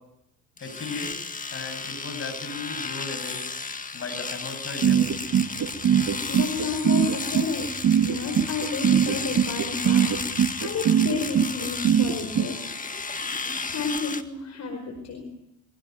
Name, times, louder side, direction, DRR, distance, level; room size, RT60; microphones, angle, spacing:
voice 1, 0.6-1.2 1.5-3.4 3.9-5.0, left 3 dB, 45° left, 6 dB, 7.3 m, -36 dB
Domestic sounds home sounds, 0.6-14.2, left 4 dB, 25° left, 1.8 m, -34 dB
sound 1, 4.8-12.5, right 9 dB, 60° right, 1.8 m, -21 dB
voice 2, 6.3-7.7 8.0-12.6 13.7-15.3, left 4 dB, 60° left, 4 dB, 5.0 m, -31 dB
23.5 x 17.5 x 9.5 m, 0.82 s
cardioid pair, 90°, 30 cm